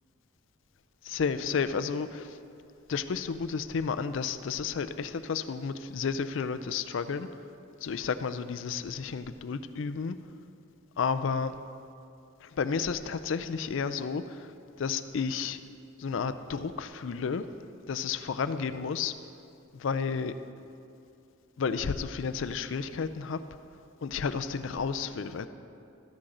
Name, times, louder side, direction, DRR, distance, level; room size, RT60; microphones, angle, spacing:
voice 1, 1.0-2.3 2.9-7.3 7.8-10.2 11.0-11.5 12.4-14.5 14.8-15.6 16.0-17.5 17.9-19.2 19.7-20.3 21.6-23.4 24.0-25.5, left 5 dB, 60° left, 11 dB, 0.4 m, -31 dB
13.0 x 10.0 x 3.8 m, 2.6 s
head